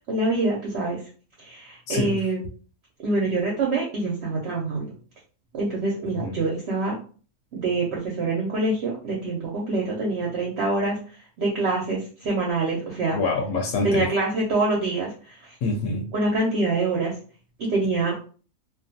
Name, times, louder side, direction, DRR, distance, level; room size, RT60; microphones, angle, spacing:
voice 1, 0.1-1.0 1.4-2.4 3.0-4.9 5.5-6.9 7.5-11.0 11.4-13.2 13.8-15.4 16.1-17.1 17.6-18.1, right 2 dB, 60° right, -2 dB, 0.8 m, -25 dB
voice 2, 6.0-6.4 13.1-14.0 15.6-16.0, left 3 dB, 70° left, 1 dB, 0.9 m, -26 dB
2.4 x 2.2 x 2.6 m, 0.39 s
omnidirectional pair, 1.5 m